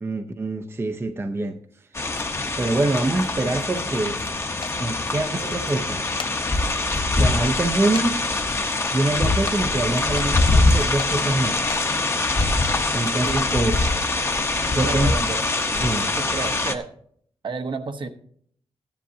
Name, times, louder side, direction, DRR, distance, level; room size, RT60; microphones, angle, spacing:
voice 1, 0.0-1.6 2.6-4.2 4.8-6.0 7.2-8.3 8.9-11.6 12.9-13.8 14.6-15.1 15.8-16.1, right 2 dB, 20° right, 0.6 m, -25 dB
sound 1, 1.9-16.7, left 2 dB, 25° left, 0.8 m, -23 dB
sound 2, 4.6-4.8 5.9-6.4 6.9-7.0 7.9-8.1 8.4-8.5 9.5-9.6 10.2-10.3 11.0-11.1 11.7-11.8 12.3-12.5, left 6 dB, 50° left, 0.5 m, -35 dB
voice 2, 14.8-15.4 16.2-16.9 17.4-18.1, right 4 dB, 50° right, 0.9 m, -30 dB
15.5 x 10.0 x 2.7 m
wide cardioid pair, 150°, 11 cm